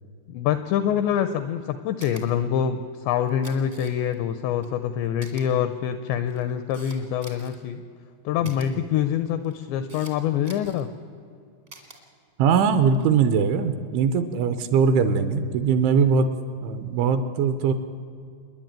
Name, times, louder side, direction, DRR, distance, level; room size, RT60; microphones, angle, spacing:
voice 1, 0.3-7.8 8.3-10.9, left 9 dB, 85° left, 11 dB, 2.5 m, -25 dB
Camera, 2.0-2.2 3.2-4.2 4.6-4.7 5.2-5.4 6.1-7.6 8.4-8.7 9.4-10.1 10.4-10.8 11.7-12.0 12.8-13.1, right 3 dB, 50° right, 0.6 m, -46 dB
voice 2, 12.4-16.3 16.6-17.7, right 6 dB, 80° right, 10 dB, 3.0 m, -21 dB
28.0 x 11.0 x 8.9 m, 2.4 s
omnidirectional pair, 5.9 m